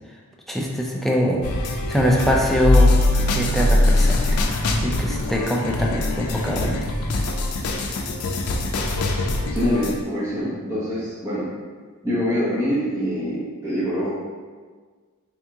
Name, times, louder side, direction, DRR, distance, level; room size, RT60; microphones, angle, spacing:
voice 1, 0.5-1.4 1.9-2.9 3.3-4.4 4.8-6.9, equal, ahead, -2 dB, 0.4 m, -23 dB
sound 1, 1.4-10.0, left 2 dB, 90° left, 0.4 m, -22 dB
voice 2, 9.5-11.5 12.0-14.1, equal, 15° right, -11 dB, 1.0 m, -24 dB
3.5 x 2.9 x 3.4 m, 1.5 s
head